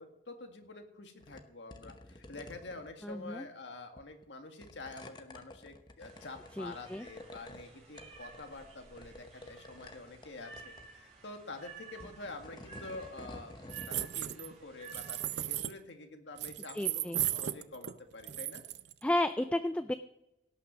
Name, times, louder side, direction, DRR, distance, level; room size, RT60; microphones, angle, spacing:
voice 1, 0.0-13.5 13.9-18.6, left 2 dB, 85° left, 4 dB, 1.9 m, -47 dB
sound 1, 1.2-1.4 1.7-3.1 4.0-4.2 4.6-7.6 8.0-8.6 9.0-10.3 10.5-10.9 11.9-14.1, left 1 dB, 25° left, 0.9 m, -50 dB
voice 2, 3.0-3.5 6.6-7.1 16.7-17.2 19.0-19.9, left 1 dB, 5° left, 10 dB, 0.3 m, -32 dB
sound 2, 6.0-15.5, right 5 dB, 40° right, 3.7 m, -54 dB
sound 3, 13.7-14.5 14.8-15.7 16.4-17.9 18.2-18.9, right 13 dB, 70° right, 0.5 m, -35 dB
17.5 x 6.0 x 6.3 m, 0.90 s
head